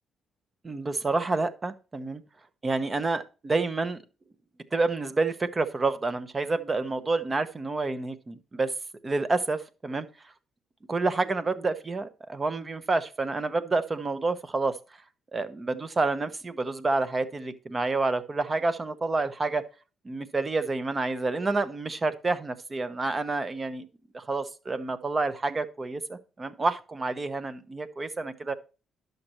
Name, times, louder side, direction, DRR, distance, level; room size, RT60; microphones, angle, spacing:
voice 1, 0.6-2.2 2.6-4.0 4.7-8.7 9.0-10.1 10.9-14.8 15.3-19.7 20.0-23.9 24.1-28.5, right 3 dB, 30° right, 12 dB, 0.9 m, -28 dB
11.0 x 6.6 x 3.0 m, 0.32 s
cardioid pair, 90°, 0 cm